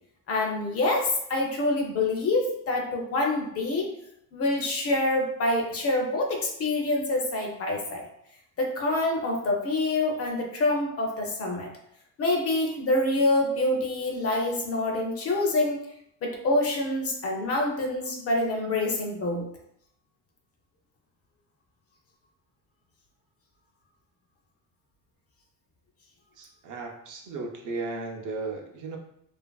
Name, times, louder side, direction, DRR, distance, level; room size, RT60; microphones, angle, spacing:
voice 1, 0.3-3.9 4.3-8.0 8.6-11.7 12.2-15.8 16.2-19.4, left 2 dB, 40° left, 1 dB, 0.5 m, -26 dB
voice 2, 26.4-29.0, right 3 dB, 50° right, 1 dB, 0.5 m, -35 dB
2.8 x 2.5 x 2.2 m, 0.75 s
cardioid pair, 130°, 40 cm